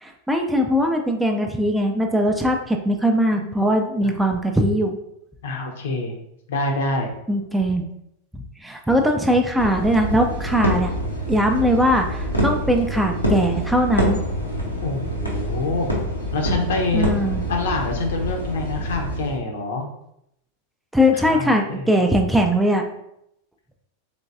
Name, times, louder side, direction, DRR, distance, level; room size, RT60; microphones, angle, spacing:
voice 1, 0.0-5.0 7.3-7.8 8.3-11.0 11.3-14.2 16.9-17.4 20.9-22.9, equal, 5° right, 3 dB, 0.4 m, -20 dB
voice 2, 5.4-6.1 6.5-7.1 14.8-15.9 16.3-17.0 17.5-19.8 21.1-22.0, left 2 dB, 60° left, 3 dB, 0.7 m, -26 dB
sound 1, 9.6-19.4, equal, 85° left, 0.9 m, -26 dB
3.7 x 3.4 x 2.5 m, 0.78 s
figure-of-eight pair, 90°, 0 cm